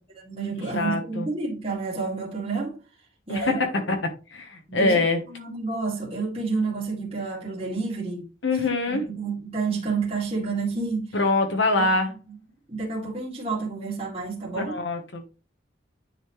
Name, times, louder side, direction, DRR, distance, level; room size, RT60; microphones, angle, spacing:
voice 1, 0.2-2.8 3.3-3.6 4.7-8.3 8.8-11.2 11.8-11.9 12.3-12.4 12.7-14.8, right 4 dB, 30° right, 2.4 m, -29 dB
voice 2, 0.7-1.3 3.3-5.2 8.4-9.0 11.1-12.1 14.7-15.2, left 2 dB, 70° left, 1.2 m, -24 dB
9.9 x 4.3 x 3.2 m
head